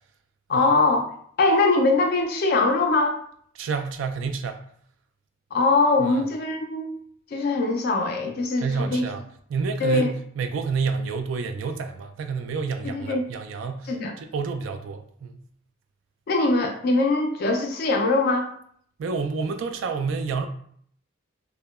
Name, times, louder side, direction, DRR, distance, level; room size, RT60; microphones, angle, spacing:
voice 1, 0.5-1.1 1.4-3.2 5.5-7.0 7.3-9.0 9.8-10.1 12.9-13.2 13.9-14.1 16.3-18.5, left 3 dB, 50° left, 3 dB, 0.3 m, -22 dB
voice 2, 3.5-4.6 6.0-6.3 8.6-9.2 9.5-15.4 19.0-20.5, right 5 dB, 70° right, 7 dB, 0.3 m, -29 dB
2.8 x 2.1 x 2.3 m, 0.62 s
head